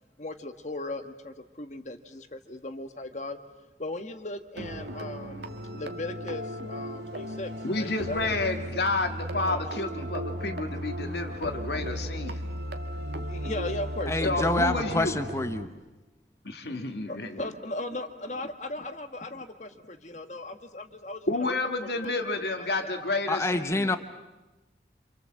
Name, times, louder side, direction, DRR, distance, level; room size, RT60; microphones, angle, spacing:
voice 1, 0.2-3.4 3.8-8.3 9.4-9.6 13.1-14.5 17.1-21.4 21.9-22.9, left 2 dB, 40° left, 7 dB, 1.5 m, -37 dB
sound 1, 4.6-15.7, equal, 70° right, 1.9 m, -35 dB
voice 2, 7.6-12.4 14.2-15.2 16.4-17.4 21.3-24.0, left 2 dB, 65° left, 5 dB, 2.1 m, -30 dB
voice 3, 14.1-15.7 23.3-24.0, left 2 dB, 15° left, 9 dB, 0.9 m, -27 dB
28.0 x 27.5 x 7.6 m, 1.1 s
head